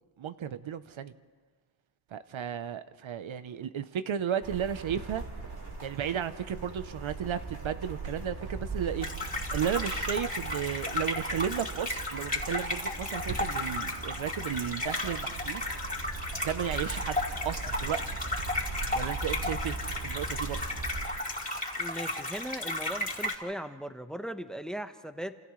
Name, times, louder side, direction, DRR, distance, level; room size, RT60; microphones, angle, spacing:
voice 1, 0.2-1.2 2.1-5.2 5.8-15.6 16.4-17.2 17.4-18.0 18.9-20.6, right 9 dB, 70° right, 12 dB, 0.9 m, -34 dB
sound 1, 4.4-21.1, right 3 dB, 50° right, 4.1 m, -39 dB
sound 2, 9.0-23.3, left 2 dB, 15° left, 3.7 m, -34 dB
voice 2, 21.8-25.4, equal, ahead, 8 dB, 1.1 m, -38 dB
29.0 x 28.5 x 3.2 m, 1.5 s
cardioid pair, 80°, 49 cm